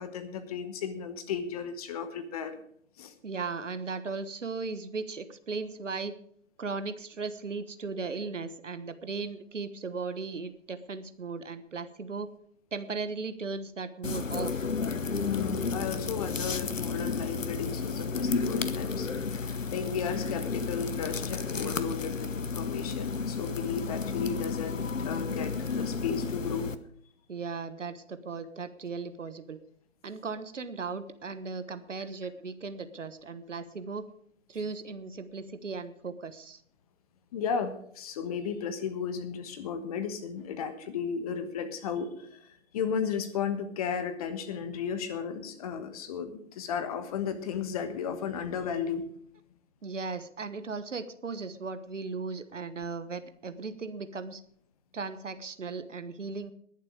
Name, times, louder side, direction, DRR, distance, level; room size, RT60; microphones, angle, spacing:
voice 1, 0.0-2.6 3.0-3.1 15.2-19.1 19.3-26.7 37.3-42.5 42.7-49.1, left 6 dB, 30° left, 10 dB, 1.3 m, -34 dB
voice 2, 3.2-6.1 6.6-12.3 12.7-14.7 27.3-29.6 30.0-34.1 34.5-36.6 49.8-54.4 54.9-56.5, right 4 dB, 70° right, 12 dB, 1.3 m, -37 dB
sound 1, 14.0-26.8, left 5 dB, 75° left, 1.1 m, -32 dB
20.5 x 7.4 x 4.9 m, 0.63 s
figure-of-eight pair, 135°, 38 cm